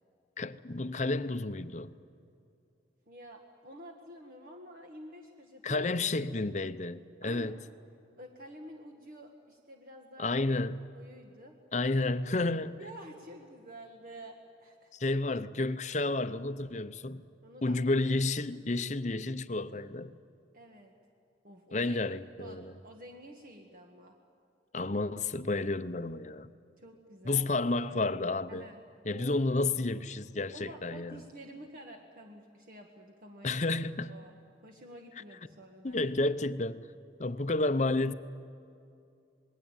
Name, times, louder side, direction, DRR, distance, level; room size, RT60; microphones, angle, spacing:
voice 1, 0.4-2.0 5.6-7.6 10.2-10.8 11.7-12.8 14.9-17.2 17.6-20.1 21.7-22.7 24.7-26.5 27.2-28.7 29.0-31.2 33.4-34.1 35.8-36.8 37.2-38.1, left 2 dB, 40° left, 0.8 m, -31 dB
voice 2, 3.1-5.9 7.2-7.6 8.2-10.6 11.0-11.5 12.8-14.9 17.4-17.8 20.5-20.9 21.4-22.0 22.4-24.1 26.8-27.5 28.5-28.8 29.1-29.4 30.5-34.4 34.6-36.1, equal, 50° right, 1.8 m, -50 dB
27.5 x 20.5 x 9.1 m
head